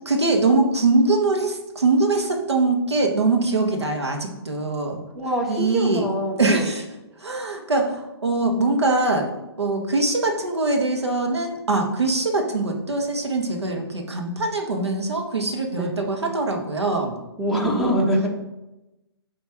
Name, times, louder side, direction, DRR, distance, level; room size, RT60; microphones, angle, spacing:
voice 1, 0.1-5.0 5.5-6.1 6.4-6.8 7.2-9.3 9.6-17.2, right 3 dB, 85° right, 2 dB, 1.4 m, -22 dB
voice 2, 5.1-6.7 15.8-15.9 17.4-18.3, right 1 dB, ahead, -3 dB, 1.3 m, -24 dB
8.5 x 3.1 x 4.8 m, 0.98 s
figure-of-eight pair, 130°, 14 cm